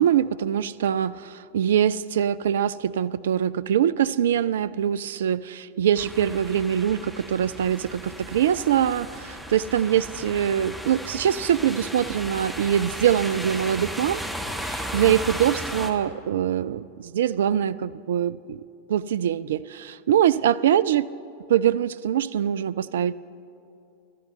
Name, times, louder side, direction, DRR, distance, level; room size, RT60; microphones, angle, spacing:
voice 1, 0.0-14.2 14.6-18.6 18.9-21.1 21.5-23.1, right 10 dB, 60° right, 16 dB, 0.3 m, -23 dB
sound 1, 6.0-15.9, equal, ahead, 1.2 m, -35 dB
27.0 x 12.5 x 3.1 m, 2.6 s
figure-of-eight pair, 90°, 0 cm